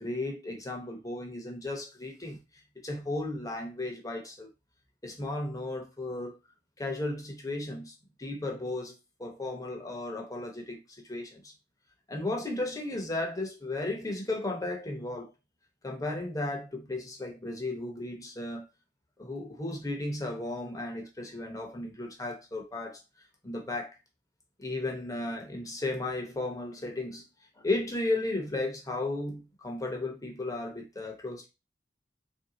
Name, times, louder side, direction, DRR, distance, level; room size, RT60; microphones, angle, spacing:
voice 1, 0.0-2.4 2.8-4.5 5.0-6.4 6.8-7.9 8.2-8.9 9.2-10.8 11.1-11.5 12.1-15.3 15.8-18.7 19.2-23.0 23.4-23.9 24.6-27.2 27.6-31.5, left 2 dB, 20° left, 0.9 m, -34 dB
3.7 x 2.7 x 3.8 m
head